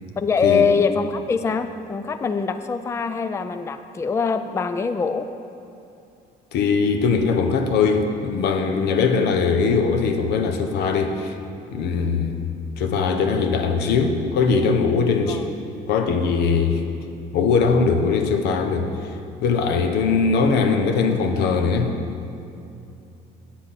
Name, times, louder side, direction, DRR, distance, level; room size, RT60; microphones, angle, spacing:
voice 1, 0.2-5.3 15.3-15.4, left 5 dB, 15° left, 9 dB, 0.4 m, -23 dB
voice 2, 6.5-11.3 11.7-12.4 12.8-15.4 15.9-16.8 17.3-18.9 19.4-21.9, left 5 dB, 80° left, 6 dB, 0.9 m, -20 dB
8.6 x 7.4 x 5.7 m, 2.7 s
cardioid pair, 110°, 17 cm